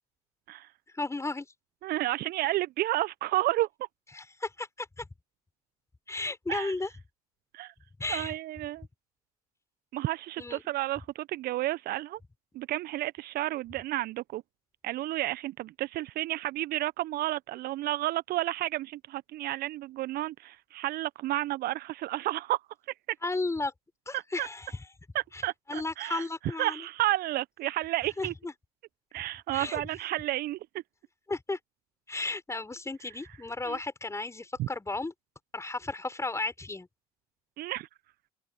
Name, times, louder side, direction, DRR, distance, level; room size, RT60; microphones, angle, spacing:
voice 1, 0.9-1.5 4.1-5.0 6.1-6.9 8.0-8.3 10.4-10.6 23.2-23.7 24.1-24.8 25.3-25.4 25.7-26.8 28.2-28.5 29.5-29.8 31.3-31.6 32.1-35.1 35.5-36.9, left 2 dB, 15° left, 6.0 m, -34 dB
voice 2, 1.8-3.7 6.5-6.7 7.5-7.7 8.1-8.8 9.9-12.2 12.5-14.4 14.8-22.6 24.1-24.5 25.1-26.3 26.6-28.3 29.1-30.6 33.6-33.8 34.6-34.7 37.6-37.9, right 16 dB, 55° right, 1.2 m, -31 dB
open air
figure-of-eight pair, 60°, 19 cm